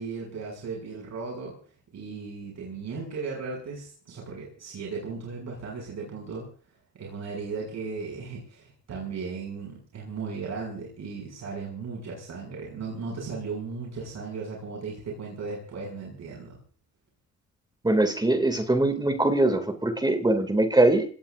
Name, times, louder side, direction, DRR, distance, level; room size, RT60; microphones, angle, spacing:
voice 1, 0.0-1.6 1.9-6.5 7.0-16.6, right 4 dB, 60° right, -2 dB, 6.8 m, -36 dB
voice 2, 17.8-21.0, right 2 dB, 15° right, 8 dB, 2.6 m, -22 dB
27.0 x 18.5 x 2.6 m, 0.43 s
cardioid pair, 90°, 30 cm